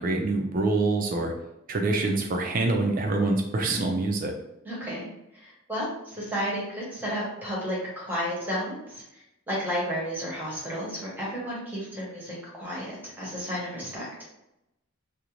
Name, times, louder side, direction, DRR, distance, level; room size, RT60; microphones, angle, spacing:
voice 1, 0.0-1.3 1.7-4.3, right 2 dB, 40° right, 2 dB, 0.4 m, -25 dB
voice 2, 4.6-5.1 5.3-9.0 9.5-14.1, equal, 10° right, -6 dB, 0.8 m, -32 dB
2.5 x 2.1 x 2.9 m, 0.87 s
head